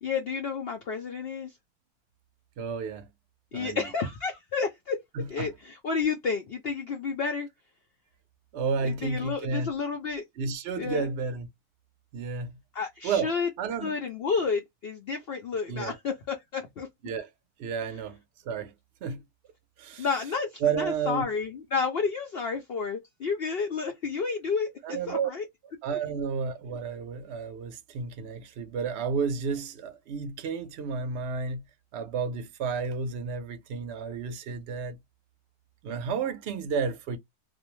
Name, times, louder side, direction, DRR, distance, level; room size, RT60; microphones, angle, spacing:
voice 1, 0.0-1.5 3.5-5.0 5.3-7.5 8.8-10.2 10.8-11.1 12.7-13.5 13.8-16.9 20.0-25.4, left 5 dB, 75° left, 0.5 m, -31 dB
voice 2, 2.6-3.1 3.5-3.8 5.1-5.5 8.5-9.7 10.4-11.5 12.1-12.5 13.0-13.9 15.7-16.0 17.0-17.3 17.6-18.2 18.4-18.7 19.0-19.2 19.8-20.1 20.6-21.2 24.8-25.3 25.8-31.6 31.9-35.0 35.8-37.2, right 5 dB, 60° right, 0.7 m, -31 dB
2.5 x 2.0 x 2.9 m
omnidirectional pair, 1.6 m